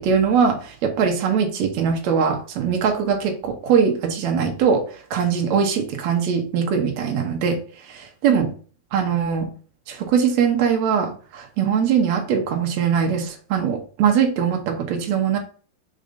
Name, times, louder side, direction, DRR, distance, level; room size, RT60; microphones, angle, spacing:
voice 1, 0.0-7.6 7.9-8.5 8.9-9.5 9.9-15.4, right 7 dB, 65° right, 3 dB, 1.8 m, -21 dB
5.1 x 5.0 x 3.9 m, 0.41 s
omnidirectional pair, 4.5 m